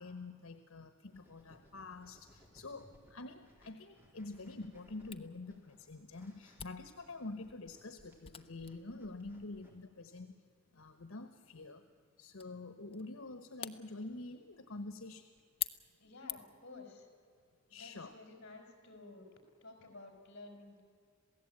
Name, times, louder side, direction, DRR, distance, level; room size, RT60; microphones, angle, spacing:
voice 1, 0.0-10.4 10.7-11.8 12.2-15.3 17.7-18.2, left 2 dB, 85° left, 9 dB, 1.2 m, -47 dB
sound 1, 1.1-9.7, equal, 10° right, 4.0 m, -64 dB
Camera, 5.1-16.7, left 9 dB, 25° left, 0.8 m, -49 dB
voice 2, 16.0-17.1 17.7-19.3 19.6-20.8, left 3 dB, 55° left, 4 dB, 4.9 m, -53 dB
27.5 x 17.0 x 8.7 m, 2.2 s
head